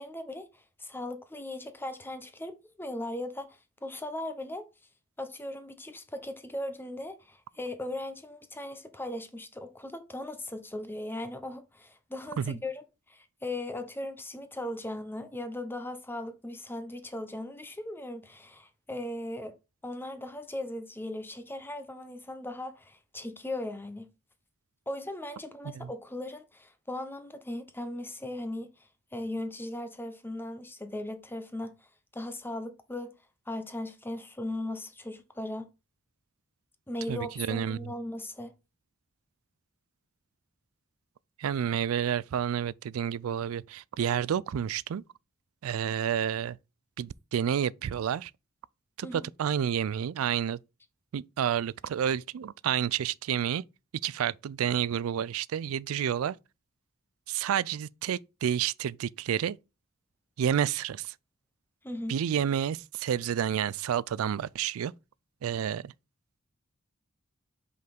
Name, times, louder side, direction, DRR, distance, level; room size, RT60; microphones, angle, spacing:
voice 1, 0.0-4.7 5.2-19.5 19.8-24.1 24.9-31.7 32.1-33.1 33.5-35.7 36.9-38.5 49.0-49.3 61.8-62.1, left 1 dB, 10° left, 0.8 m, -38 dB
voice 2, 37.1-37.8 41.4-45.0 45.6-46.6 47.0-48.3 49.0-50.6 51.1-53.6 54.0-56.4 57.3-59.6 60.4-61.1 62.1-64.9 65.4-65.9, right 9 dB, 90° right, 0.3 m, -30 dB
5.3 x 4.0 x 5.2 m
head